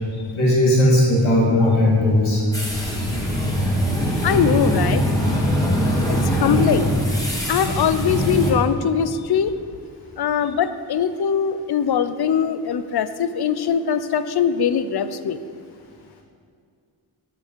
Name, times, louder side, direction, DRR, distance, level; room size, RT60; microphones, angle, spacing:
voice 1, 0.4-2.4, left 1 dB, 85° left, -5 dB, 2.1 m, -17 dB
sound 1, 2.5-8.5, equal, 10° left, 1.8 m, -22 dB
voice 2, 4.2-5.0 6.3-6.9 7.5-9.5 10.2-15.4, left 7 dB, 60° left, 12 dB, 0.5 m, -21 dB
8.2 x 5.6 x 4.5 m, 2.2 s
cardioid pair, 55°, 46 cm